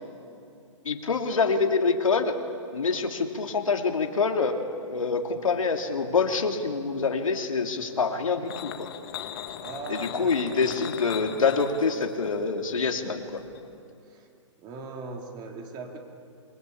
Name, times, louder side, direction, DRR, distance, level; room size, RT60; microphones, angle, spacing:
voice 1, 0.8-2.4 2.7-4.6 4.9-8.9 9.9-13.4, left 4 dB, 90° left, 3 dB, 3.0 m, -26 dB
sound 1, 8.4-13.8, left 10 dB, 45° left, 1.8 m, -40 dB
voice 2, 9.6-10.8 14.1-14.3 14.6-16.0, right 4 dB, 25° right, 2 dB, 3.8 m, -39 dB
27.5 x 23.0 x 8.7 m, 2.5 s
hypercardioid pair, 145°, 17 cm